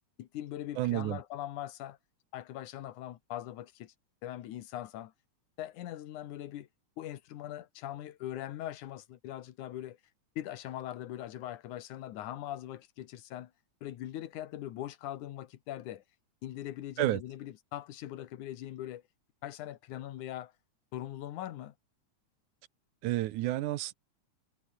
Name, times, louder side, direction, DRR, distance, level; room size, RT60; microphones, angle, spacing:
voice 1, 0.2-2.0 2.3-3.9 4.2-5.1 5.6-6.7 7.0-10.0 10.4-13.5 13.8-16.0 16.4-19.0 19.4-20.5 20.9-21.7, left 13 dB, 85° left, 2.7 m, -41 dB
voice 2, 0.8-1.2 17.0-17.2 23.0-23.9, right 15 dB, 90° right, 2.3 m, -30 dB
omnidirectional pair, 3.4 m